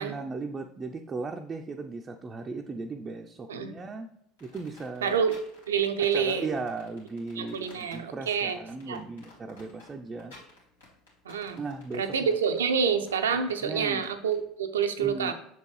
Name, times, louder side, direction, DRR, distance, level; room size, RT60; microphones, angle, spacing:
voice 1, 0.0-4.1 4.4-5.2 6.0-10.3 11.6-12.3 13.6-14.1 15.0-15.3, right 3 dB, 25° right, 3 dB, 0.5 m, -37 dB
sound 1, 4.4-14.4, left 2 dB, 85° left, 2.0 m, -53 dB
voice 2, 5.0-5.3 5.7-6.6 7.4-8.6 8.9-9.0 11.3-11.6 11.9-15.3, right 6 dB, 80° right, 8 dB, 0.5 m, -27 dB
6.6 x 4.4 x 3.2 m, 0.74 s
hypercardioid pair, 75°, 0 cm